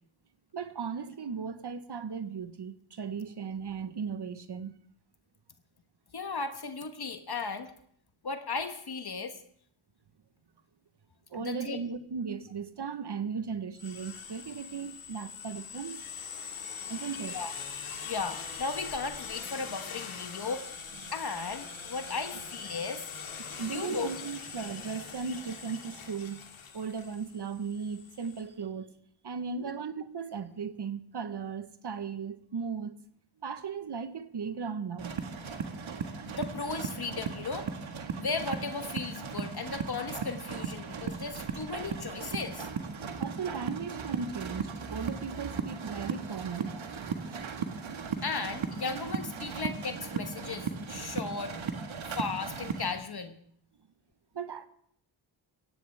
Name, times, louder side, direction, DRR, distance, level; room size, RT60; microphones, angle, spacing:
voice 1, 0.5-4.7 11.3-16.0 16.9-17.4 23.4-26.4 26.7-28.9 29.2-33.0 33.4-35.2 43.2-47.5 54.3-54.7, right 6 dB, 55° right, 1.2 m, -37 dB
voice 2, 6.1-7.7 8.2-9.4 11.3-11.8 17.3-17.5 18.0-20.8 21.1-23.2 23.7-24.3 29.6-29.7 36.3-37.7 38.2-42.7 48.2-51.6 52.1-53.4, left 4 dB, 50° left, 1.3 m, -36 dB
sound 1, 13.7-28.4, left 6 dB, 80° left, 2.2 m, -42 dB
sound 2, 35.0-52.9, right 6 dB, 70° right, 1.7 m, -37 dB
17.0 x 15.5 x 3.5 m
cardioid pair, 45°, 49 cm